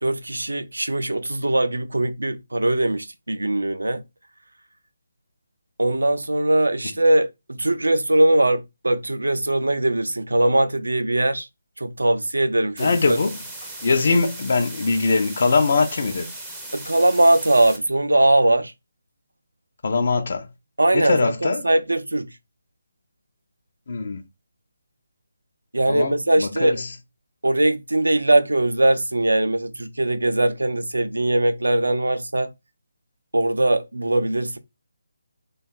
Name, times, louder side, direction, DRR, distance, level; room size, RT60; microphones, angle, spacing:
voice 1, 0.0-4.0 5.8-11.5 11.8-13.2 16.7-18.7 20.8-22.3 25.7-26.8 27.4-32.5 33.3-34.6, right 1 dB, 70° right, 0.4 m, -21 dB
voice 2, 12.8-13.4 13.8-16.3 19.8-20.5 20.9-21.6 23.9-24.2 25.9-26.9, left 4 dB, 45° left, 0.4 m, -22 dB
sound 1, 12.8-17.8, right 2 dB, 5° right, 0.5 m, -37 dB
2.8 x 2.2 x 2.4 m
figure-of-eight pair, 150°, 0 cm